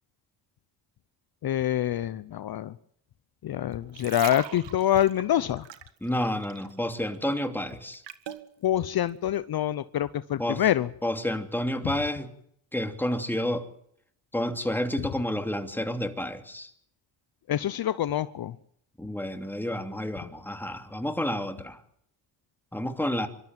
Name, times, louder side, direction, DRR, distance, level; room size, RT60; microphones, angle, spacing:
voice 1, 1.4-2.7 3.4-5.6 8.6-10.9 17.5-18.5, left 11 dB, 50° left, 15 dB, 0.9 m, -26 dB
sound 1, 3.7-6.8 7.1-8.5 9.1-9.2, right 10 dB, 65° right, 1.8 m, -41 dB
voice 2, 6.0-8.0 10.4-10.7 11.0-12.3 12.7-13.6 14.3-16.7 19.0-21.8 22.7-23.3, left 1 dB, 5° left, 6 dB, 3.0 m, -30 dB
25.0 x 13.0 x 9.2 m, 0.71 s
supercardioid pair, 75°, 46 cm